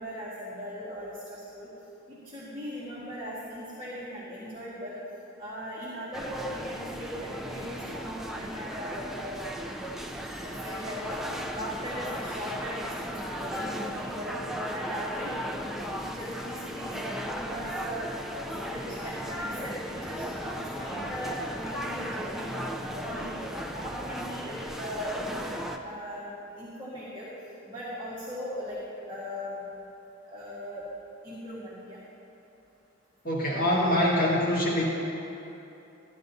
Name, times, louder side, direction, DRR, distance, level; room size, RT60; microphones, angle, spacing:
voice 1, 0.0-1.7 2.1-5.0 5.4-9.4 10.4-11.2 11.5-14.3 14.7-18.1 18.4-23.3 23.7-25.5 25.8-27.3 27.7-28.8 29.1-29.6 30.2-30.8 31.2-32.0, equal, 30° right, -9 dB, 1.8 m, -39 dB
sound 1, 6.1-25.8, equal, ahead, 0.5 m, -36 dB
voice 2, 33.2-34.8, left 1 dB, 50° left, -6 dB, 1.7 m, -24 dB
15.0 x 11.0 x 2.7 m, 2.9 s
head